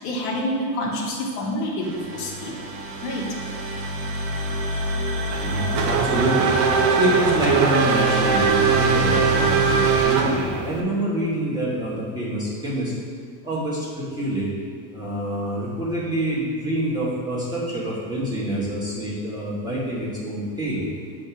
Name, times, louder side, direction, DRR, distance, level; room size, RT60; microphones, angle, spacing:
voice 1, 0.0-2.5 3.0-3.3, left 1 dB, 70° left, -3 dB, 1.8 m, -27 dB
sound 1, 1.8-10.0, equal, 75° right, 1.3 m, -28 dB
Race car auto racing / Accelerating revving vroom, 5.3-10.8, right 5 dB, 35° right, 0.6 m, -21 dB
voice 2, 5.4-6.5 6.9-12.9 13.4-14.5 14.9-20.8, equal, 10° right, -7 dB, 1.5 m, -26 dB
7.8 x 3.7 x 5.8 m, 2.1 s
supercardioid pair, 145°, 49 cm